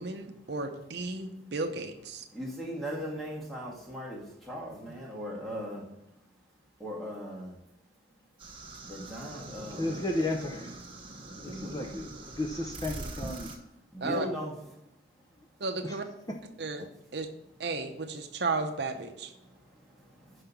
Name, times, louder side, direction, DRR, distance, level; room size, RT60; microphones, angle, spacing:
voice 1, 0.0-2.2 14.0-14.3 15.6-16.1 16.6-17.3 17.6-19.3, right 3 dB, 60° right, 5 dB, 0.7 m, -34 dB
voice 2, 2.3-5.9 6.8-7.6 8.8-10.0 10.4-10.6 11.4-12.0 13.9-14.5 19.4-20.4, equal, ahead, -4 dB, 1.7 m, -39 dB
sound 1, 8.4-13.6, right 2 dB, 30° right, 1.2 m, -43 dB
voice 3, 9.8-10.7 11.4-13.5 15.8-16.0, left 1 dB, 20° left, 2 dB, 0.6 m, -33 dB
5.8 x 5.6 x 6.9 m, 0.86 s
head